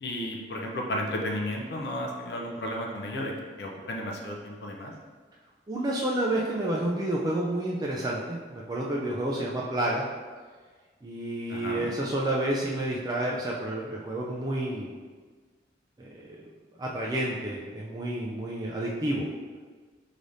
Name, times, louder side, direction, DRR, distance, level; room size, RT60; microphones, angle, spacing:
voice 1, 0.0-4.9 11.5-11.9, left 1 dB, 65° left, 0 dB, 0.5 m, -33 dB
voice 2, 5.7-10.0 11.0-14.9 16.0-16.4 16.8-19.3, right 1 dB, 20° right, -3 dB, 0.3 m, -30 dB
5.0 x 3.2 x 2.6 m, 1.5 s
head